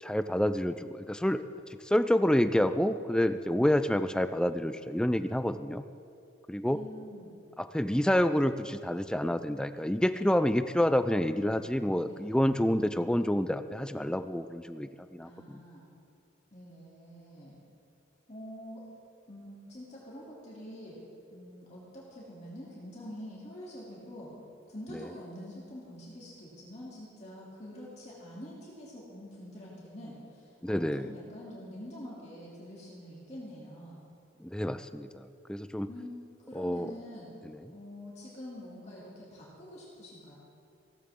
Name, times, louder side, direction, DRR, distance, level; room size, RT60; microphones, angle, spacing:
voice 1, 0.0-1.4 1.8-5.8 6.5-6.8 7.7-15.6 30.6-31.1 34.4-35.9 36.6-36.9, left 1 dB, 5° left, 11 dB, 0.3 m, -28 dB
voice 2, 6.7-7.3 12.1-12.3 12.6-12.8 15.2-15.8 16.5-17.6 18.3-18.8 19.3-21.0 21.3-24.3 24.7-34.0 35.9-36.1 36.4-37.3 37.7-40.4, equal, 35° left, -6 dB, 2.8 m, -46 dB
17.0 x 14.5 x 3.7 m, 2.5 s
head